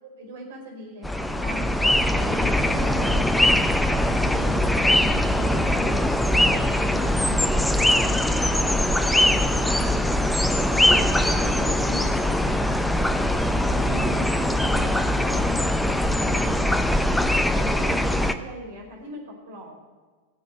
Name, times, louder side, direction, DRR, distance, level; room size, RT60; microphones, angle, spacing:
voice 1, 0.0-1.7 2.0-6.0 6.3-10.0 10.4-12.5 13.5-16.0 16.2-16.8 17.3-19.8, right 1 dB, 55° right, 0 dB, 5.0 m, -40 dB
sound 1, 1.0-18.3, left 1 dB, 5° left, 0.8 m, -22 dB
17.5 x 7.7 x 7.9 m, 1.4 s
figure-of-eight pair, 90°, 0 cm